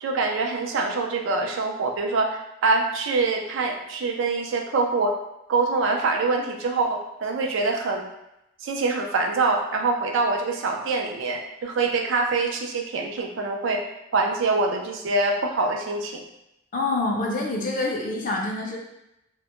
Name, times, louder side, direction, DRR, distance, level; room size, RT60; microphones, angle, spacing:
voice 1, 0.0-5.1 5.5-8.0 8.6-13.8 14.1-16.2, right 3 dB, 70° right, 2 dB, 0.4 m, -24 dB
voice 2, 16.7-18.8, left 2 dB, 45° left, -1 dB, 0.4 m, -26 dB
2.1 x 2.0 x 2.9 m, 0.87 s
head